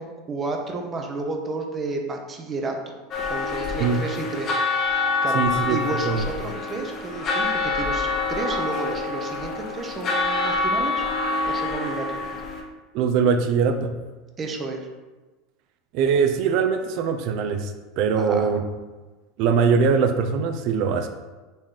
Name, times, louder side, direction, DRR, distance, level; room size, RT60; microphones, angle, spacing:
voice 1, 0.0-11.0 11.4-12.4 14.4-14.9 18.2-18.6, right 3 dB, 30° right, 3 dB, 0.7 m, -32 dB
sound 1, 3.1-12.6, left 3 dB, 40° left, 0.8 m, -26 dB
voice 2, 5.3-6.3 12.9-14.0 15.9-18.6 19.4-21.1, right 6 dB, 60° right, 7 dB, 0.5 m, -22 dB
4.0 x 3.1 x 3.7 m, 1.2 s
supercardioid pair, 115°, 0 cm